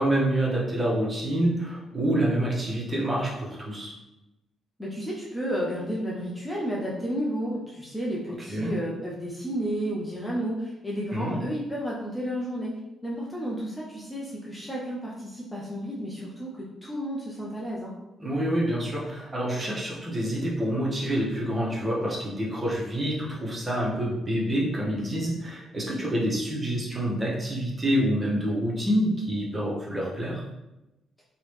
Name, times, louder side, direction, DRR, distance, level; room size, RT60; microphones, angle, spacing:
voice 1, 0.0-4.0 8.5-8.7 11.1-11.4 18.2-30.4, right 1 dB, 20° right, -4 dB, 1.0 m, -27 dB
voice 2, 4.8-12.7 13.0-17.9, equal, 10° left, -4 dB, 0.7 m, -32 dB
3.0 x 3.0 x 3.1 m, 0.97 s
cardioid pair, 90°, 0 cm